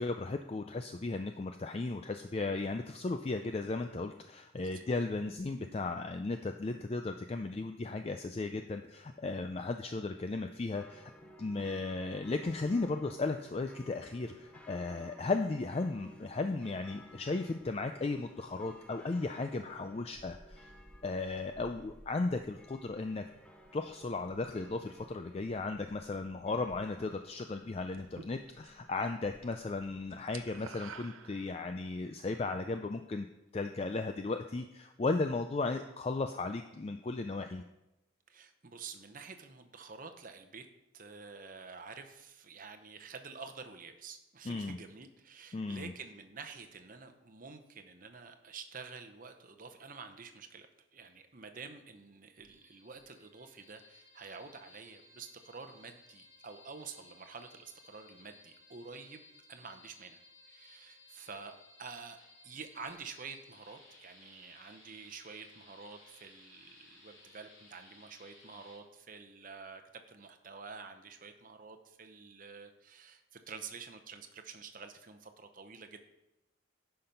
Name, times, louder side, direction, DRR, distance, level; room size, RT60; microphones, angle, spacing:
voice 1, 0.0-11.1 11.4-20.7 21.0-23.2 23.7-33.3 33.5-37.6 44.4-44.8 45.5-45.9, left 3 dB, 30° left, 6 dB, 0.3 m, -35 dB
sound 1, 10.7-30.5, equal, 5° left, 0.7 m, -57 dB
sound 2, 27.9-28.9 29.2-29.6 29.8-31.9, right 6 dB, 80° right, 0.6 m, -50 dB
voice 2, 38.3-40.7 40.9-50.7 50.9-59.2 59.5-60.2 60.5-61.5 61.8-62.2 62.4-76.0, right 5 dB, 40° right, 7 dB, 0.8 m, -49 dB
sound 3, 52.4-68.8, left 2 dB, 75° left, 3.0 m, -60 dB
10.0 x 5.8 x 5.3 m, 0.93 s
head